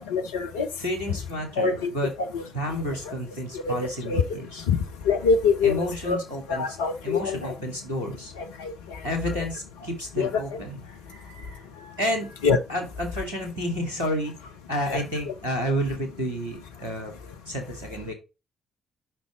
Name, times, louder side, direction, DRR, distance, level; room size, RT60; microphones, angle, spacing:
voice 1, 0.1-0.7 1.6-1.9 2.2-2.4 3.1-3.2 3.8-4.2 4.7-4.8 5.1-6.2 6.5-7.5 8.6-8.7 10.2-10.3 12.4-12.6 14.9-15.0, left 5 dB, 70° left, 0.6 m, -24 dB
voice 2, 0.8-2.1 2.5-4.6 5.6-6.8 7.0-8.3 9.0-17.1 17.4-18.1, equal, 85° right, 1.6 m, -31 dB
5.2 x 4.4 x 5.0 m
figure-of-eight pair, 40°, 0 cm